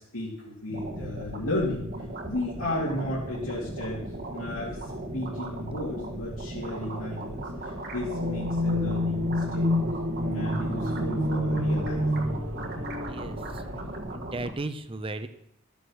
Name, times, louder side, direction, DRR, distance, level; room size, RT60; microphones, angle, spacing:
voice 1, 0.0-1.9 2.2-4.0 4.3-9.7 10.2-12.1, left 1 dB, 80° left, -6 dB, 2.5 m, -34 dB
sound 1, 0.7-14.5, right 1 dB, 45° right, 1.6 m, -37 dB
sound 2, 8.0-14.0, left 1 dB, 65° right, 1.9 m, -28 dB
voice 2, 13.1-13.6 14.1-15.3, right 2 dB, 25° right, 11 dB, 0.7 m, -35 dB
12.5 x 7.0 x 6.4 m, 0.75 s
head